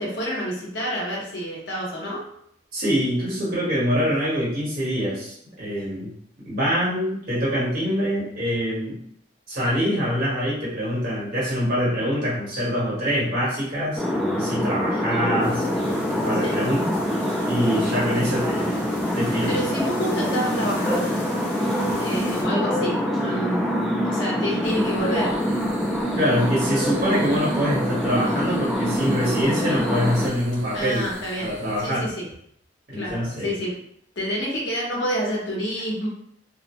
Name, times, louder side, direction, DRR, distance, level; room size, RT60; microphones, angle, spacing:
voice 1, 0.0-2.2 16.4-16.5 19.5-21.3 22.0-23.8 24.0-25.3 30.7-32.3 32.9-33.7 34.2-36.1, equal, 75° left, -4 dB, 0.9 m, -28 dB
voice 2, 2.7-6.1 6.5-9.0 9.5-16.9 17.4-18.8 19.1-19.6 26.2-31.1 31.4-32.1 32.9-33.5, equal, 50° right, -8 dB, 1.2 m, -25 dB
sound 1, 14.0-30.3, equal, ahead, 0.4 m, -25 dB
sound 2, 15.4-22.4, left 1 dB, 45° left, 1.0 m, -41 dB
sound 3, 24.6-31.9, right 1 dB, 20° right, 1.0 m, -43 dB
2.6 x 2.0 x 3.0 m, 0.68 s
head